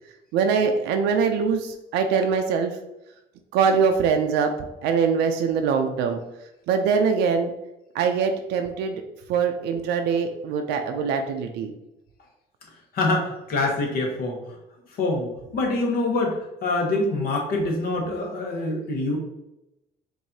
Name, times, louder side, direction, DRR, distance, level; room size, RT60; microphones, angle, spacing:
voice 1, 0.3-2.7 3.5-4.5 4.8-6.2 6.7-7.5 7.9-9.0 9.3-11.7, right 6 dB, 85° right, 5 dB, 0.4 m, -23 dB
voice 2, 12.9-14.4 15.0-16.3 16.6-19.2, left 2 dB, 65° left, 1 dB, 1.2 m, -25 dB
4.7 x 2.6 x 2.7 m, 0.90 s
cardioid pair, 110°, 17 cm